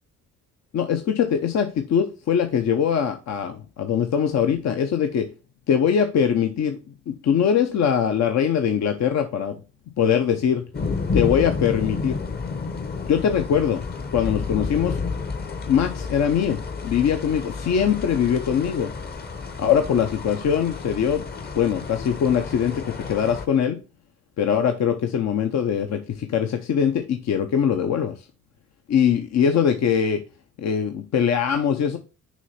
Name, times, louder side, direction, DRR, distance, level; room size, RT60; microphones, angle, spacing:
voice 1, 0.7-5.3 5.7-6.8 7.1-9.6 10.0-10.6 11.1-12.2 13.1-13.8 14.1-15.0 15.7-18.9 19.6-21.2 21.6-23.8 24.4-28.1 28.9-30.2 30.6-32.0, left 8 dB, 60° left, 0.8 m, -22 dB
sound 1, 10.7-23.5, left 4 dB, 30° left, 0.9 m, -31 dB
6.3 x 3.3 x 5.5 m
cardioid pair, 90°, 30 cm